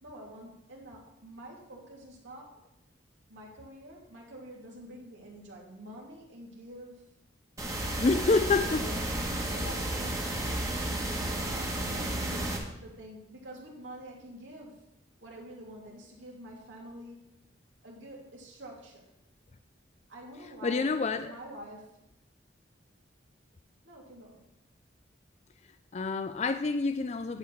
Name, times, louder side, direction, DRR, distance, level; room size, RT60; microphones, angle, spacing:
voice 1, 0.0-2.5 3.3-7.1 8.6-10.3 11.3-14.8 15.2-17.2 17.8-19.1 20.1-20.8 21.2-21.9 23.8-24.4, right 1 dB, 80° right, -3 dB, 2.9 m, -47 dB
sound 1, 7.6-12.6, right 1 dB, 15° right, 1.4 m, -32 dB
voice 2, 8.0-8.8 20.6-21.3 25.9-27.4, left 3 dB, 35° left, 9 dB, 0.4 m, -27 dB
10.5 x 4.8 x 7.1 m, 0.83 s
head